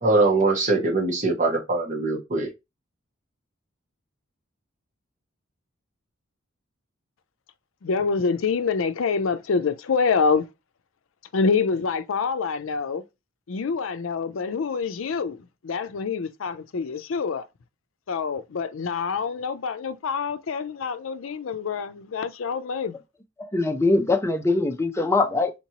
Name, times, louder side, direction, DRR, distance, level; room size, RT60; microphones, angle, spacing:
voice 1, 0.0-2.5, right 2 dB, 40° right, 1.2 m, -22 dB
voice 2, 7.8-10.4 11.3-13.0 13.5-17.5 18.1-23.0, left 5 dB, 85° left, 0.5 m, -26 dB
voice 3, 23.4-25.5, left 3 dB, 15° left, 0.5 m, -22 dB
4.3 x 3.0 x 2.8 m
head